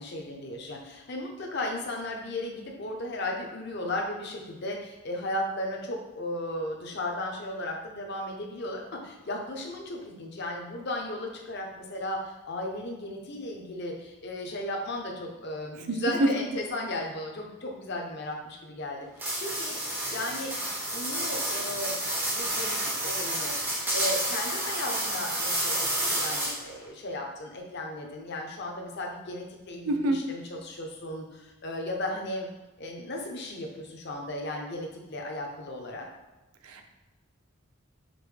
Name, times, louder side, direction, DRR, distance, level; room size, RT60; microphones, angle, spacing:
voice 1, 0.0-32.5 32.8-36.1, left 1 dB, 50° left, 1 dB, 0.6 m, -35 dB
voice 2, 15.9-16.3 29.8-30.2 36.7-36.9, right 1 dB, 90° right, 5 dB, 0.5 m, -26 dB
sound 1, 19.2-26.8, right 1 dB, 10° right, 0.4 m, -30 dB
5.1 x 2.1 x 3.2 m, 1.1 s
head